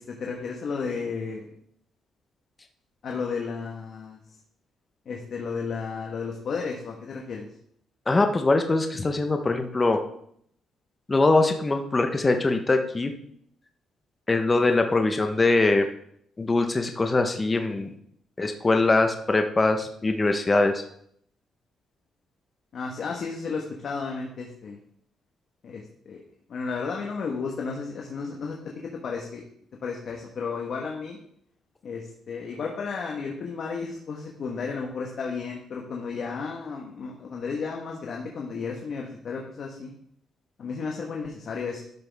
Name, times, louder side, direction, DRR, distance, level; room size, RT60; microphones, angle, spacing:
voice 1, 0.0-1.5 3.0-4.2 5.0-7.5 22.7-24.8 25.6-26.2 26.5-28.6 28.9-29.4 29.8-31.2 31.8-39.9 40.6-41.8, left 5 dB, 55° left, 0 dB, 1.4 m, -33 dB
voice 2, 8.1-10.0 11.1-13.1 14.3-15.9 16.4-17.9 18.4-20.8, left 3 dB, 25° left, 5 dB, 1.1 m, -22 dB
12.0 x 6.1 x 3.6 m, 0.68 s
cardioid pair, 90°, 0 cm